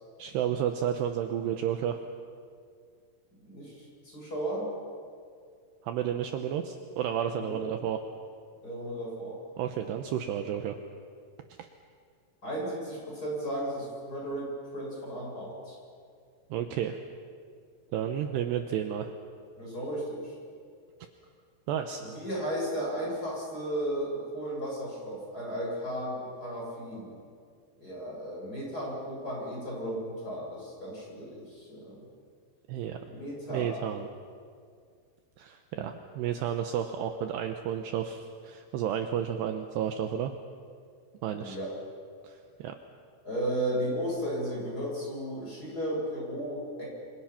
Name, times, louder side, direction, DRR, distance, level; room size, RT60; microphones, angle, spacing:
voice 1, 0.2-2.0 5.8-8.0 9.6-10.8 16.5-17.0 17.9-19.1 21.7-22.0 32.7-33.0 33.5-34.1 35.4-40.3 41.2-41.6 42.2-42.7, right 9 dB, 80° right, 6 dB, 2.5 m, -31 dB
voice 2, 3.4-4.7 7.3-7.6 8.6-9.4 12.4-15.8 19.6-20.4 22.0-27.2 27.8-32.0 33.0-33.8 41.3-41.7 43.2-46.9, equal, 15° left, -4 dB, 8.0 m, -35 dB
28.0 x 26.0 x 5.9 m, 2.2 s
omnidirectional pair, 6.0 m